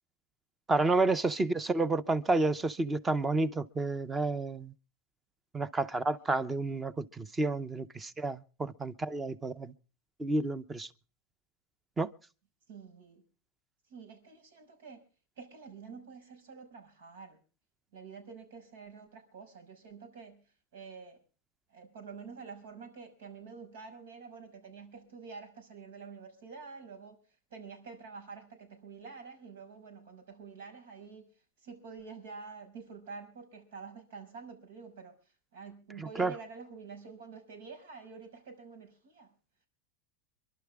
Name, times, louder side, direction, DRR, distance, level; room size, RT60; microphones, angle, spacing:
voice 1, 0.7-4.7 5.5-9.7 10.2-10.9 12.0-12.1 36.0-36.3, right 3 dB, 10° right, 0.7 m, -30 dB
voice 2, 12.7-13.2 13.9-15.0 15.4-17.4 17.9-20.4 20.7-21.2 21.7-27.2 27.5-31.3 31.6-35.1 35.5-39.3, right 5 dB, 85° right, 6.1 m, -48 dB
27.5 x 12.0 x 3.6 m
supercardioid pair, 170°, 0 cm